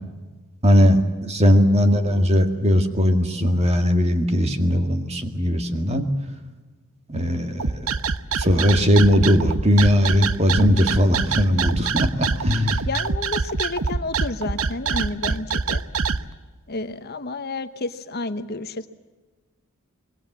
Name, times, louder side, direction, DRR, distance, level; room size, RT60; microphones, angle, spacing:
voice 1, 0.6-6.1 7.1-7.9 8.4-12.8, equal, 30° right, 6 dB, 2.1 m, -19 dB
sound 1, 7.6-16.2, right 5 dB, 70° right, 0.9 m, -24 dB
voice 2, 12.9-15.8 16.7-18.9, left 3 dB, 45° left, 10 dB, 1.0 m, -30 dB
26.0 x 22.0 x 7.5 m, 1.3 s
head